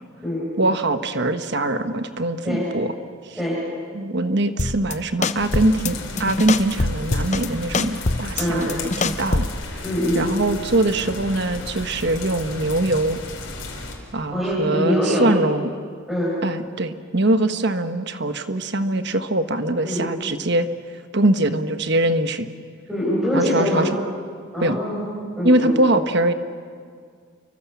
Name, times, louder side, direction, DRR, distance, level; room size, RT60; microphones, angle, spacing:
voice 1, 0.6-2.9 3.9-9.5 10.1-13.2 14.1-15.7 16.4-20.7 21.1-22.5 23.3-23.9 24.6-24.8 25.4-26.3, right 1 dB, 55° right, 9 dB, 1.3 m, -22 dB
sound 1, 4.6-4.9 5.2-5.9 6.2-7.5 7.7-9.6, left 3 dB, 35° left, 0.8 m, -23 dB
sound 2, 5.3-13.9, left 2 dB, 65° left, 4.8 m, -34 dB
voice 2, 8.4-8.7 9.8-10.3 14.3-15.4 16.1-16.4 19.8-20.1 22.9-23.9 24.5-25.1 25.4-25.8, equal, ahead, -7 dB, 7.5 m, -23 dB
29.5 x 24.0 x 7.2 m, 2.1 s
head